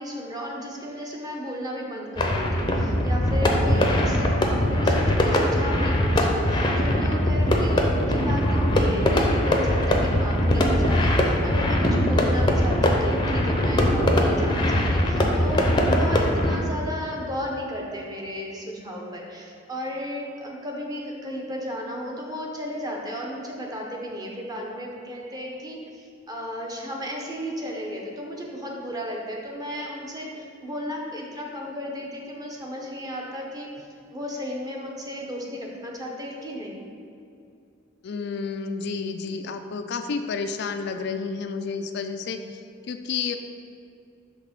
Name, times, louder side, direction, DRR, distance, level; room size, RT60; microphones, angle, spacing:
voice 1, 0.0-36.8, equal, 20° right, -1 dB, 0.8 m, -34 dB
sound 1, 2.2-16.6, left 1 dB, 25° left, 0.6 m, -21 dB
voice 2, 38.0-42.4 42.9-43.4, left 5 dB, 60° left, 7 dB, 0.3 m, -30 dB
5.9 x 3.5 x 5.9 m, 2.5 s
head